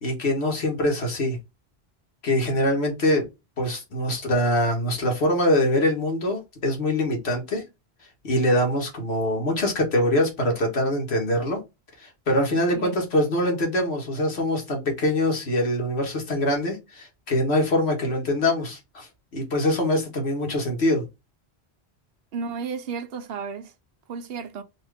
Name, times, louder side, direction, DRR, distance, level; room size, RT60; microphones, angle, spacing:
voice 1, 0.0-1.4 2.2-3.2 3.6-7.6 8.2-11.6 12.0-21.0, left 1 dB, 80° left, 1.7 m, -24 dB
voice 2, 22.3-23.7 24.1-24.6, right 5 dB, 70° right, 0.8 m, -33 dB
4.3 x 2.7 x 3.3 m
omnidirectional pair, 1.1 m